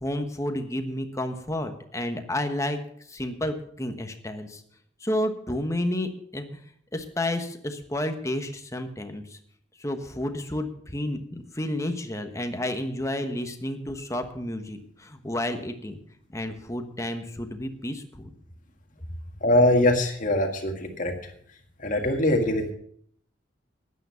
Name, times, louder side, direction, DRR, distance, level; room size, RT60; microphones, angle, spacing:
voice 1, 0.0-2.8 3.1-4.6 5.0-6.6 6.9-9.4 9.8-16.0 16.3-18.3, left 1 dB, 15° left, 6 dB, 1.2 m, -31 dB
voice 2, 19.4-21.2 21.8-22.7, left 1 dB, 45° left, 4 dB, 1.9 m, -22 dB
13.0 x 9.6 x 5.7 m, 0.65 s
head